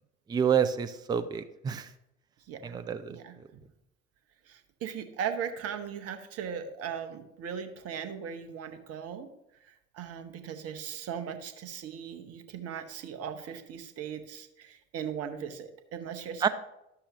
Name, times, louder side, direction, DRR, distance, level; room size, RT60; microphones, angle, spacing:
voice 1, 0.3-1.9 2.6-3.2 16.4-16.5, right 7 dB, 10° right, 11 dB, 0.4 m, -28 dB
voice 2, 2.5-2.8 3.1-3.6 4.4-9.3 9.6-16.5, right 8 dB, 45° right, 8 dB, 1.0 m, -38 dB
11.5 x 6.8 x 2.9 m, 0.84 s
figure-of-eight pair, 55°, 35 cm